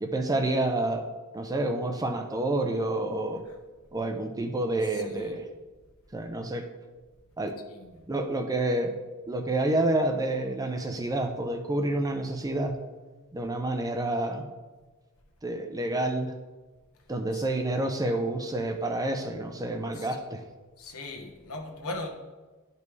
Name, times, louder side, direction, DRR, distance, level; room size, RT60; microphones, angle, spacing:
voice 1, 0.0-1.0 1.3-3.4 3.9-5.4 6.1-6.7 7.4-7.5 8.1-8.9 9.3-12.7 13.3-14.4 15.4-16.3 17.1-20.4, right 2 dB, 15° right, 5 dB, 0.5 m, -28 dB
voice 2, 4.9-5.4 7.7-8.1 17.3-17.5 19.9-20.1 20.8-22.1, left 2 dB, 70° left, 2 dB, 1.2 m, -39 dB
10.5 x 5.3 x 3.2 m, 1.3 s
head